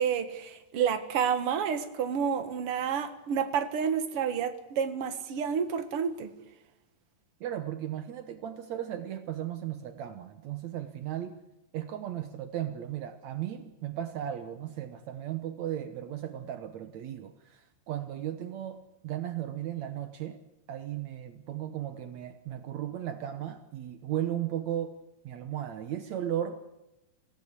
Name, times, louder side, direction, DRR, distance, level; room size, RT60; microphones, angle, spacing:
voice 1, 0.0-6.3, right 7 dB, 55° right, 9 dB, 1.7 m, -29 dB
voice 2, 7.4-11.4 11.7-20.4 20.7-25.0 25.2-26.6, right 11 dB, 80° right, 9 dB, 1.6 m, -36 dB
25.5 x 17.0 x 8.3 m, 0.96 s
omnidirectional pair, 4.7 m